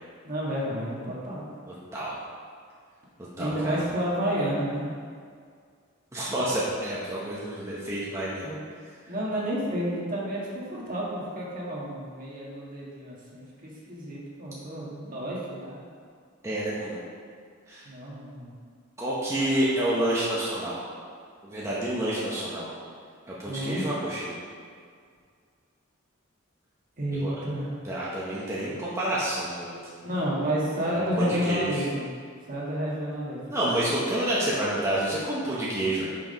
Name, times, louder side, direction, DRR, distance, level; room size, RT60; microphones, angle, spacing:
voice 1, 0.2-1.5 3.4-4.8 8.4-8.6 9.1-15.8 17.8-18.5 23.4-23.8 27.0-27.7 30.0-32.1 32.5-33.4, equal, 45° right, -5 dB, 1.6 m, -30 dB
voice 2, 3.4-3.8 6.1-8.5 16.4-17.0 17.7-17.8 19.0-20.8 21.4-22.7 23.3-24.4 27.2-27.3 27.8-29.8 30.9-31.8 33.5-36.1, right 1 dB, 15° right, -8 dB, 1.0 m, -29 dB
5.9 x 4.8 x 5.2 m, 2.1 s
head